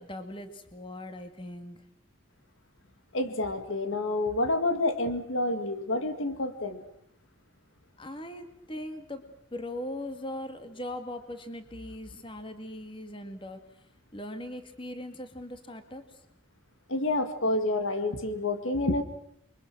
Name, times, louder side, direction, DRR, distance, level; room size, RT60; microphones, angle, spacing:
voice 1, 0.0-1.8 8.0-9.3 9.5-13.8 14.1-16.2, left 1 dB, 25° left, 8 dB, 2.1 m, -40 dB
voice 2, 3.1-6.8 16.9-19.0, left 2 dB, 70° left, 9 dB, 2.1 m, -28 dB
29.0 x 23.5 x 6.2 m, 0.71 s
head